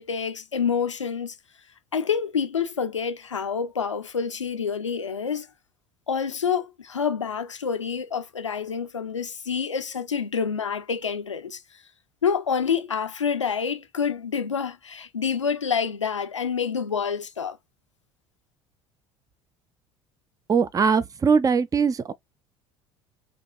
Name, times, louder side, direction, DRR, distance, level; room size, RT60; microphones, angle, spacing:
voice 1, 0.0-1.4 1.9-5.5 6.1-11.6 12.2-17.6, left 6 dB, 90° left, 0.5 m, -27 dB
voice 2, 20.5-22.1, right 5 dB, 25° right, 0.6 m, -21 dB
5.1 x 2.9 x 2.5 m
figure-of-eight pair, 60°, 15 cm